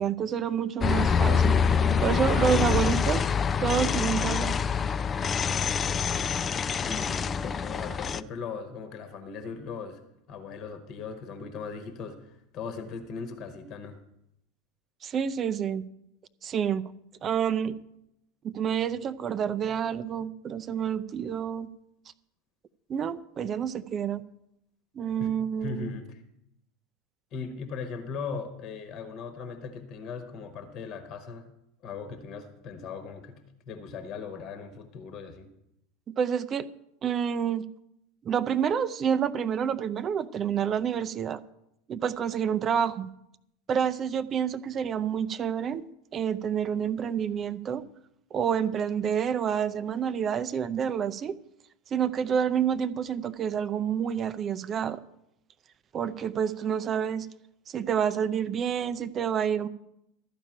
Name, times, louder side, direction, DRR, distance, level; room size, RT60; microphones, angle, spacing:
voice 1, 0.0-1.5 2.0-3.2 3.6-4.5 15.0-15.8 16.4-16.8 17.2-17.7 18.4-21.7 22.9-24.2 25.0-25.9 36.1-36.7 37.0-37.7 38.2-41.4 41.9-43.1 43.7-45.8 46.1-47.8 48.3-51.4 51.9-55.0 55.9-57.3 57.7-59.7, right 8 dB, 30° right, 14 dB, 0.5 m, -28 dB
sound 1, 0.8-8.2, left 6 dB, 25° left, 0.4 m, -25 dB
voice 2, 6.8-10.0 10.3-14.0 25.2-25.3 25.6-26.2 27.3-31.5 31.8-33.4 33.7-35.5, left 5 dB, 45° left, 8 dB, 1.3 m, -38 dB
13.0 x 5.0 x 8.8 m, 0.81 s
figure-of-eight pair, 80°, 0 cm